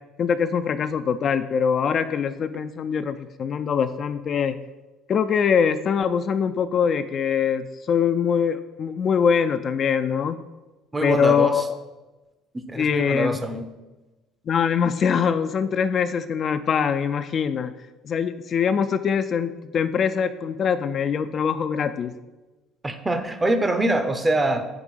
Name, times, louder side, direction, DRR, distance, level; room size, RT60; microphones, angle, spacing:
voice 1, 0.2-4.6 5.1-10.4 11.0-11.6 12.8-13.4 14.5-17.7 18.0-22.1, left 7 dB, 50° left, 10 dB, 0.3 m, -23 dB
voice 2, 10.9-11.6 12.5-13.7 22.8-24.6, right 2 dB, 20° right, 8 dB, 0.7 m, -24 dB
4.8 x 4.8 x 5.3 m, 1.1 s
hypercardioid pair, 70°, 0 cm